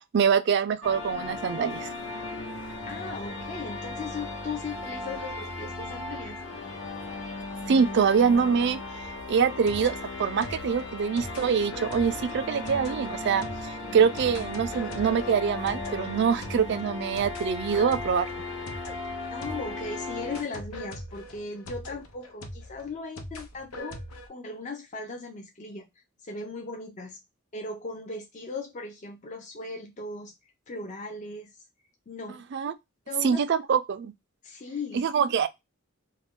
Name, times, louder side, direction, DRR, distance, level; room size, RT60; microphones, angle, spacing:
voice 1, 0.0-1.9 7.7-8.8 9.3-18.3 32.5-32.7 33.2-34.1 34.9-35.5, right 6 dB, 50° right, 0.3 m, -24 dB
sound 1, 0.8-20.4, left 2 dB, 60° left, 0.9 m, -36 dB
voice 2, 2.9-6.4 19.3-24.0 24.3-25.9 26.2-27.2 27.5-30.3 30.7-31.6 32.1-32.4 33.1-33.4 34.4-35.1, left 3 dB, 35° left, 0.4 m, -38 dB
sound 2, 9.0-19.9 20.3-24.3, left 1 dB, 90° left, 0.7 m, -42 dB
2.5 x 2.1 x 3.5 m
head